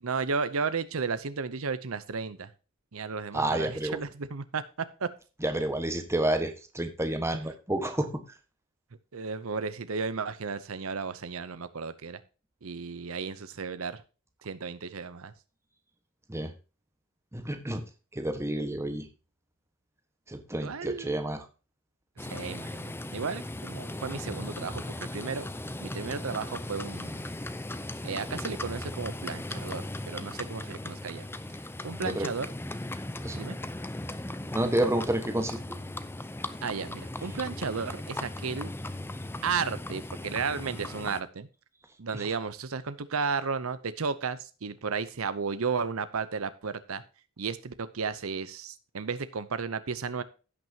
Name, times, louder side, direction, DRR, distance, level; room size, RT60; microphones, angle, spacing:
voice 1, 0.0-2.5 2.9-5.1 9.1-12.2 12.6-14.0 14.4-15.3 20.6-21.2 22.2-24.8 25.1-25.5 25.8-27.3 28.0-31.3 31.8-32.5 33.3-33.6 36.6-38.7 39.4-41.5 42.0-47.0 47.4-50.2, right 5 dB, 75° right, 13 dB, 0.7 m, -33 dB
voice 2, 3.3-4.0 5.4-8.2 16.3-16.5 17.3-17.8 18.1-19.1 20.3-21.4 32.0-32.3 33.2-33.4 34.5-35.6 42.1-42.2, right 1 dB, 15° right, 7 dB, 1.4 m, -29 dB
Livestock farm animals working animals, 22.2-41.2, left 1 dB, 10° left, 0.6 m, -38 dB
16.5 x 6.1 x 2.9 m, 0.33 s
head